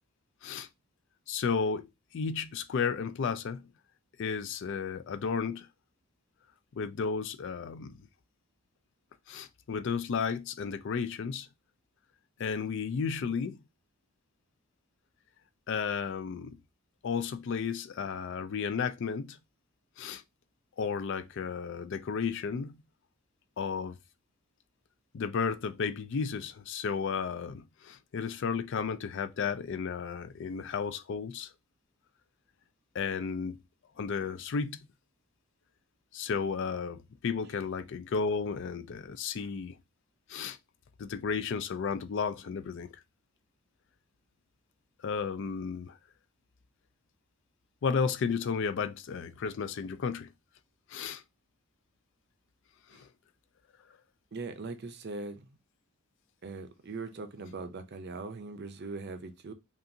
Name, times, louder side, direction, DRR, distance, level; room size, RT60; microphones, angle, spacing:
voice 1, 1.3-3.6 4.2-5.7 6.7-8.0 9.3-11.5 12.4-13.6 15.7-16.6 17.0-19.4 20.0-20.2 20.8-22.8 23.6-24.0 25.1-31.5 32.9-33.6 34.0-34.8 36.1-39.8 40.3-40.6 41.0-42.9 45.0-46.0 47.8-50.3 50.9-51.2 52.9-53.1, left 5 dB, 55° left, 0.4 m, -33 dB
voice 2, 54.3-55.5 56.4-59.5, right 3 dB, 50° right, 0.6 m, -40 dB
5.4 x 2.4 x 2.7 m
head